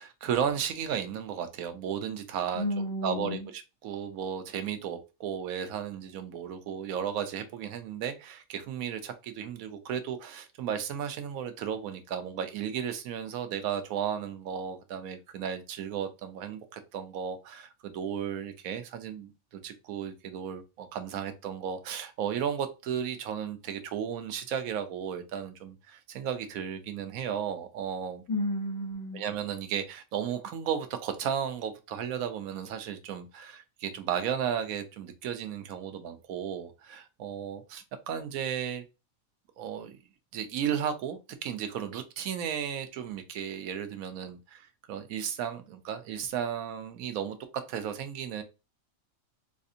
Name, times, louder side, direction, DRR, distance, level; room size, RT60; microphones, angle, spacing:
voice 1, 0.0-2.7 3.0-28.2 29.1-38.8 39.6-40.0 40.3-47.4 47.7-48.4, right 8 dB, 90° right, 1.1 m, -34 dB
voice 2, 2.5-3.5 28.3-29.2, left 1 dB, 80° left, 2.0 m, -32 dB
4.1 x 2.5 x 2.7 m
omnidirectional pair, 1.5 m